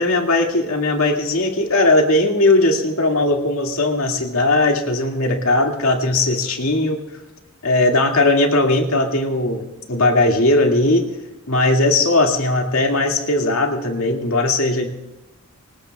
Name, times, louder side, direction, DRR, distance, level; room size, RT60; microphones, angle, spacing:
voice 1, 0.0-7.0 7.6-11.1 11.5-14.9, left 2 dB, 70° left, 2 dB, 2.2 m, -18 dB
24.5 x 19.0 x 2.3 m, 1.0 s
head